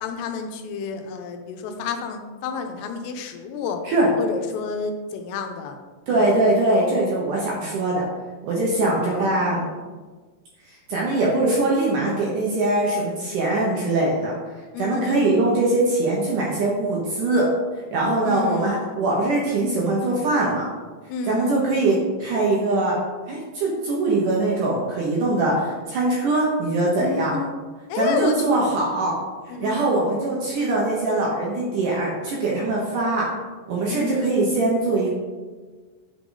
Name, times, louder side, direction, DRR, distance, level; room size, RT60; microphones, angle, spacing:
voice 1, 0.0-3.8 4.2-5.8 6.1-6.3 8.5-8.6 8.9-9.7 14.7-15.5 18.2-18.9 21.1-21.7 27.0-27.5 27.9-28.5 29.5-30.1 32.7-33.1 33.9-34.6, left 4 dB, 85° left, 5 dB, 2.7 m, -30 dB
voice 2, 6.1-8.1 8.4-9.6 10.9-14.3 14.8-17.5 17.9-20.7 21.3-23.0 23.3-27.3 28.0-29.1 29.6-33.3 33.7-35.1, right 2 dB, 70° right, -4 dB, 2.1 m, -22 dB
8.6 x 3.7 x 3.9 m, 1.4 s
omnidirectional pair, 4.7 m